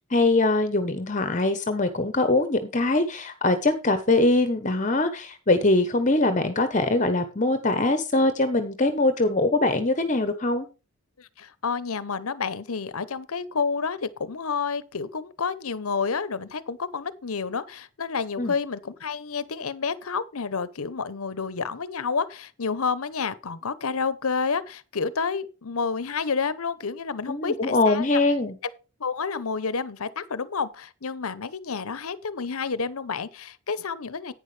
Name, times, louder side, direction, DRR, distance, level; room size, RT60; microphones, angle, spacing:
voice 1, 0.1-10.7 18.4-18.5 27.3-28.5, left 2 dB, 35° left, 1.0 m, -22 dB
voice 2, 11.2-28.0 29.0-34.3, left 5 dB, 75° left, 0.8 m, -29 dB
11.0 x 9.3 x 3.3 m
head